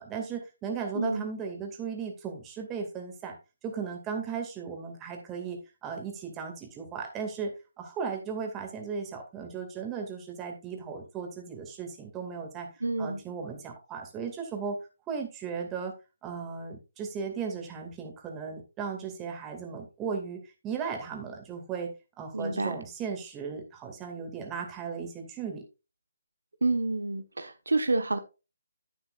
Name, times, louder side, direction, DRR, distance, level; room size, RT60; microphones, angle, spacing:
voice 1, 0.0-3.4 3.6-12.7 13.0-14.8 15.1-15.9 16.2-21.9 22.2-25.6, right 6 dB, 15° right, 2.3 m, -36 dB
voice 2, 12.8-13.2 22.3-22.8 26.6-28.2, right 2 dB, 80° right, 1.3 m, -28 dB
10.0 x 9.8 x 2.5 m
figure-of-eight pair, 145°, 0 cm